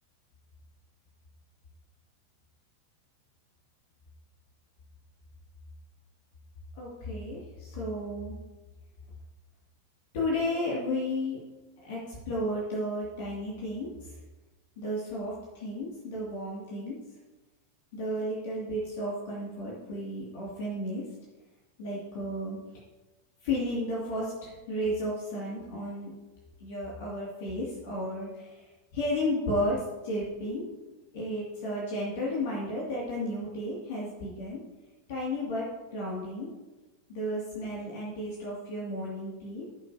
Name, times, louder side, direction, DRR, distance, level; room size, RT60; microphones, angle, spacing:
voice 1, 6.8-8.4 10.1-11.4 11.8-14.1 14.8-17.0 17.9-21.0 21.8-22.6 23.4-26.1 26.6-28.7 28.9-30.6 31.1-34.6 35.1-35.6 35.9-36.5 37.1-39.7, left 1 dB, 50° left, -5 dB, 2.4 m, -33 dB
15.5 x 5.9 x 2.8 m, 1.2 s
figure-of-eight pair, 90°, 0 cm